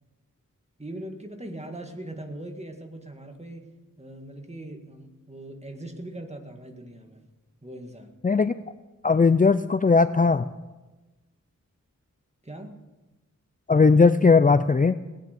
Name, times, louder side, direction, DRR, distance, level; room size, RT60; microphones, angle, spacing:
voice 1, 0.8-3.7 4.0-7.3 7.6-8.1 12.4-12.8, right 1 dB, 20° right, 3 dB, 2.0 m, -40 dB
voice 2, 8.2-8.5 9.0-10.5 13.7-14.9, left 4 dB, 25° left, 12 dB, 0.4 m, -18 dB
18.5 x 9.4 x 6.8 m, 1.1 s
wide cardioid pair, 70°, 32 cm